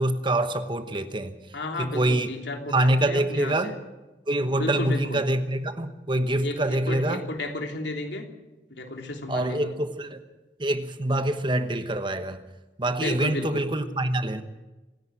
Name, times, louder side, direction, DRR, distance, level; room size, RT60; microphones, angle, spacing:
voice 1, 0.0-1.4 1.8-2.3 2.7-3.7 4.3-7.2 9.3-10.2 10.6-12.4 12.8-14.4, right 1 dB, 25° right, 1.1 m, -25 dB
voice 2, 1.5-3.8 4.5-5.2 6.4-8.2 8.7-9.7 13.0-13.7, left 2 dB, 75° left, 3.2 m, -33 dB
27.0 x 10.5 x 9.1 m
head